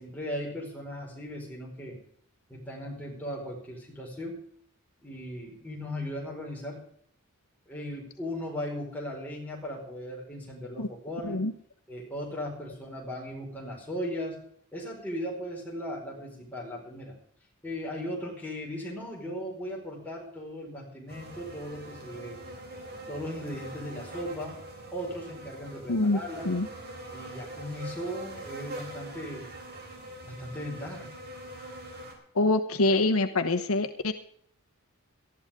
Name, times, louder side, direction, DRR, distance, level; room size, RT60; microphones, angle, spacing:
voice 1, 0.0-2.0 2.5-4.4 5.0-6.8 7.7-11.4 11.9-14.4 14.7-17.1 17.6-22.4 23.1-24.6 24.9-26.5 27.1-29.4 30.3-31.1, equal, 10° left, -3 dB, 5.0 m, -37 dB
sound 1, 21.1-32.1, right 1 dB, 50° right, 4.0 m, -43 dB
voice 2, 25.9-26.2 26.4-26.7 32.3-34.1, left 2 dB, 80° left, 7 dB, 1.0 m, -25 dB
18.5 x 13.5 x 3.7 m, 0.64 s
head